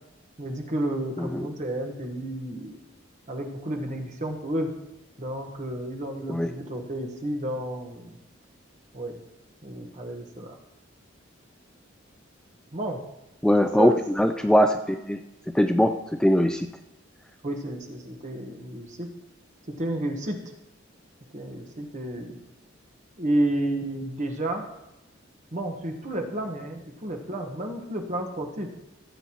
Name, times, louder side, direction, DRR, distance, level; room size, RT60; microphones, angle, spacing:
voice 1, 0.4-2.8 3.3-4.7 5.2-8.2 8.9-9.2 9.6-10.6 12.7-13.0 13.8-14.0 17.4-19.1 19.8-20.4 21.3-22.4 23.2-24.6 25.5-28.7, right 1 dB, 40° right, 2 dB, 1.3 m, -31 dB
voice 2, 13.4-15.2 15.5-16.7, equal, 5° left, 6 dB, 0.3 m, -21 dB
16.0 x 8.2 x 3.0 m, 0.94 s
head